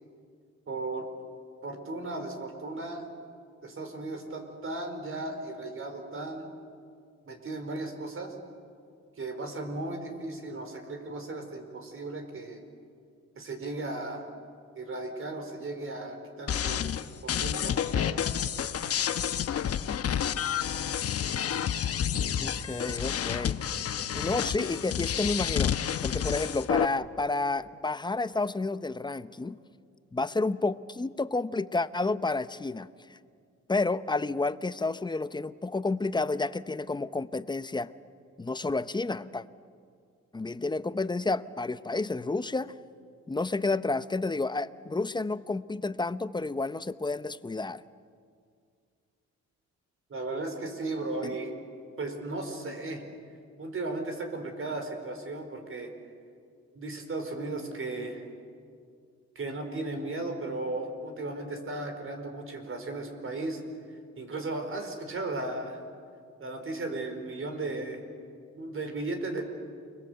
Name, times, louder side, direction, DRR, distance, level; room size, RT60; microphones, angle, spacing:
voice 1, 0.7-1.1 1.6-3.1 3.6-6.5 7.2-8.3 9.2-12.6 13.4-14.3 14.8-18.2 50.1-51.5 52.0-53.0 53.6-55.9 56.7-58.2 59.3-63.6 64.2-65.8 66.4-68.0 68.5-69.4, right 2 dB, 45° right, 5 dB, 4.7 m, -36 dB
sound 1, 16.5-26.8, left 9 dB, 50° left, 1.0 m, -29 dB
voice 2, 22.4-23.6 24.1-25.8 26.0-29.6 30.1-33.2 33.7-37.9 38.4-39.4 40.3-42.8 43.3-47.8 51.2-51.3, left 3 dB, 15° left, 14 dB, 0.8 m, -30 dB
29.5 x 22.0 x 8.1 m, 2.2 s
cardioid pair, 90°, 30 cm